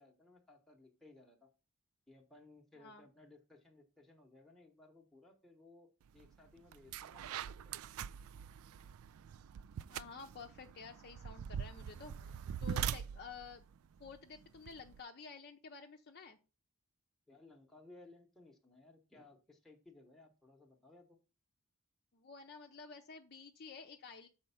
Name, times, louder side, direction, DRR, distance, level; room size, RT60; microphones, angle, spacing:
voice 1, 0.0-1.5 2.1-7.8 17.3-21.2, left 2 dB, ahead, 0 dB, 0.9 m, -61 dB
voice 2, 2.8-3.1 9.9-13.6 14.0-16.4 22.1-24.3, left 5 dB, 45° left, 4 dB, 0.6 m, -51 dB
sound 1, 6.2-6.3 6.7-15.0, right 8 dB, 70° right, 0.3 m, -43 dB
6.5 x 4.3 x 5.6 m, 0.32 s
head